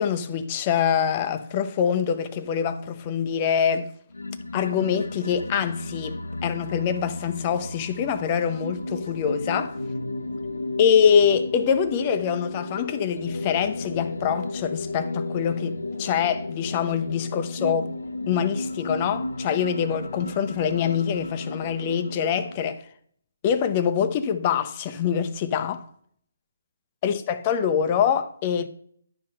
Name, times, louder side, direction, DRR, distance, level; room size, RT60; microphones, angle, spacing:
voice 1, 0.0-3.9 4.5-9.8 10.8-17.9 18.3-22.8 23.4-25.8 27.0-28.7, left 7 dB, 30° left, 0.7 m, -24 dB
sound 1, 4.1-22.7, left 2 dB, 85° left, 0.7 m, -34 dB
11.0 x 3.8 x 5.6 m
figure-of-eight pair, 145°, 0 cm